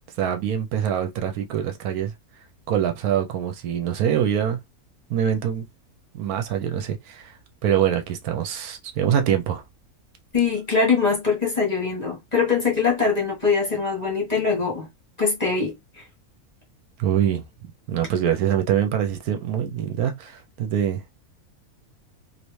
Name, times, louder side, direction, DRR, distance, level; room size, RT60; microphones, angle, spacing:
voice 1, 0.2-2.1 2.7-4.6 5.1-5.7 6.1-7.3 7.6-9.6 17.0-17.4 17.9-21.2, right 9 dB, 80° right, 1.1 m, -24 dB
voice 2, 10.3-14.9 15.2-15.7, left 5 dB, 30° left, 1.2 m, -22 dB
3.2 x 2.7 x 3.1 m
omnidirectional pair, 1.6 m